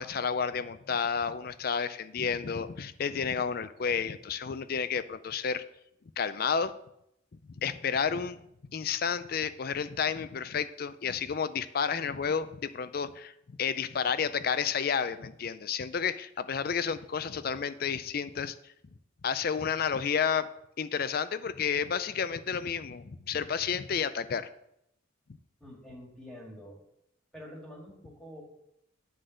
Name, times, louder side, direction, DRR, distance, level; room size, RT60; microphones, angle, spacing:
voice 1, 0.0-5.6 6.2-6.7 7.4-8.4 8.7-18.7 19.2-20.5 20.8-24.5, left 6 dB, 50° left, 13 dB, 0.4 m, -31 dB
voice 2, 25.6-26.8 27.3-28.4, equal, 5° left, -2 dB, 2.0 m, -47 dB
9.9 x 4.0 x 6.3 m, 0.79 s
head